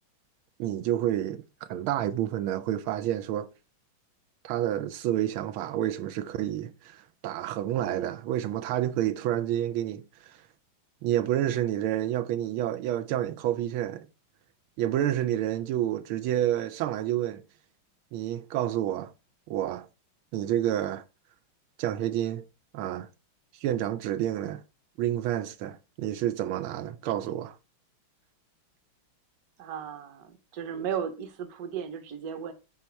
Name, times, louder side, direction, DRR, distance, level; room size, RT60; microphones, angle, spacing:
voice 1, 0.6-1.4 1.7-3.5 4.4-10.4 11.0-14.1 14.8-17.4 18.1-19.1 19.5-19.9 20.3-21.0 21.8-22.5 22.7-23.1 23.6-24.6 25.0-27.6, right 12 dB, 85° right, 1.5 m, -29 dB
voice 2, 29.6-32.5, right 8 dB, 55° right, 1.3 m, -35 dB
8.3 x 4.3 x 4.5 m
omnidirectional pair, 2.3 m